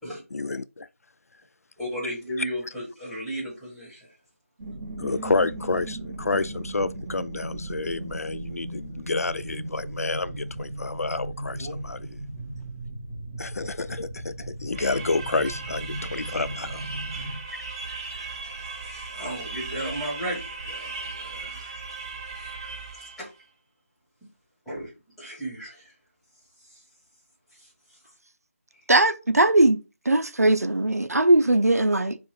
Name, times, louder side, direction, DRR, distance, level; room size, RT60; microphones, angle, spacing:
voice 1, 0.3-0.9 5.0-12.2 13.4-16.9, left 3 dB, 75° left, 0.3 m, -29 dB
voice 2, 1.8-4.1 11.6-11.8 18.6-21.8 22.4-22.5 23.2-23.3 24.6-24.9 25.2-25.9 26.6-26.8 27.5-28.0 28.7-28.8, equal, ahead, 1.7 m, -35 dB
sound 1, 4.6-17.4, right 1 dB, 45° right, 2.1 m, -37 dB
sound 2, 14.7-23.3, right 4 dB, 20° right, 0.5 m, -37 dB
voice 3, 28.9-32.2, right 2 dB, 90° right, 0.5 m, -20 dB
4.6 x 2.4 x 4.5 m
figure-of-eight pair, 160°, 8 cm